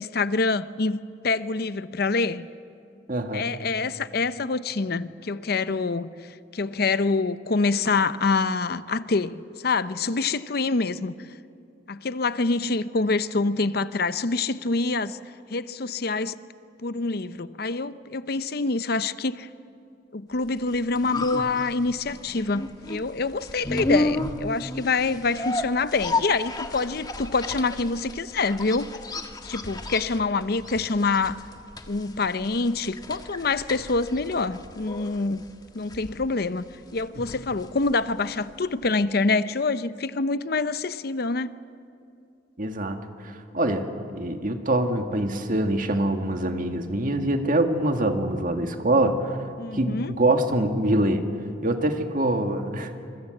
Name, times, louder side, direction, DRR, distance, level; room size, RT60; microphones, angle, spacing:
voice 1, 0.0-2.5 3.3-6.1 6.5-11.1 11.9-15.2 15.5-16.4 16.8-19.5 20.1-28.9 29.4-31.4 31.9-35.5 35.7-36.6 36.9-41.5 49.6-50.2, left 3 dB, 55° left, 0.7 m, -26 dB
voice 2, 3.1-3.5 37.2-37.3 42.6-43.9 44.1-49.4 49.7-51.2 51.6-52.9, right 1 dB, 45° right, 1.9 m, -24 dB
sound 1, 20.6-38.6 38.8-38.9, left 2 dB, 20° left, 1.4 m, -33 dB
26.5 x 23.5 x 7.9 m
head